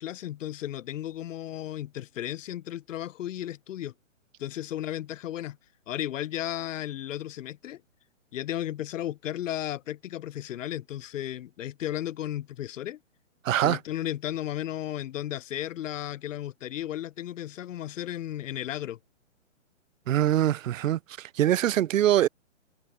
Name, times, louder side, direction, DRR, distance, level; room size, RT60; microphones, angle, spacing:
voice 1, 0.0-3.9 4.4-5.6 5.9-7.8 8.3-13.0 13.6-19.0, left 12 dB, 80° left, 0.5 m, -34 dB
voice 2, 13.4-13.8 20.1-22.3, right 12 dB, 90° right, 0.5 m, -23 dB
hypercardioid pair, 170°, 38 cm